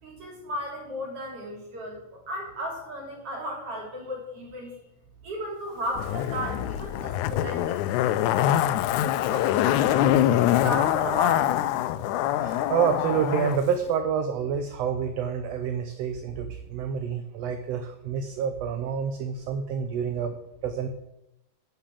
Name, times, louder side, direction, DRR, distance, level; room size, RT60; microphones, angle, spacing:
voice 1, 0.0-4.8 5.2-8.7 9.3-11.6, equal, 50° right, 0 dB, 3.9 m, -35 dB
Zipper (clothing), 6.0-13.6 13.9-14.0, left 12 dB, 90° left, 2.0 m, -24 dB
voice 2, 12.4-20.3 20.6-20.9, right 7 dB, 70° right, 7 dB, 1.7 m, -28 dB
9.9 x 6.4 x 7.3 m, 0.88 s
omnidirectional pair, 3.4 m